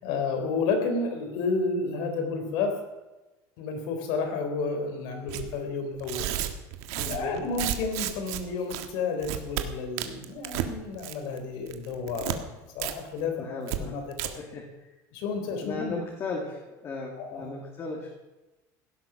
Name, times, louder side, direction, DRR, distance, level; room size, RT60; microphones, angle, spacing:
voice 1, 0.0-2.8 3.6-6.3 7.1-14.0 15.1-16.0 17.2-17.5, left 4 dB, 70° left, 5 dB, 4.0 m, -31 dB
Tearing, 5.3-5.5 6.0-8.4 8.7-8.9 9.2-9.6 10.0-10.7 11.0-11.4 11.7-12.4 12.8-12.9 13.2-13.3 13.7-13.8 14.1-14.3, right 14 dB, 80° right, 1.5 m, -32 dB
voice 2, 7.0-7.4 13.4-13.9 14.3-14.7 15.6-18.1, left 3 dB, 30° left, 0 dB, 2.5 m, -36 dB
16.5 x 11.0 x 6.3 m, 1.1 s
cardioid pair, 155°, 9 cm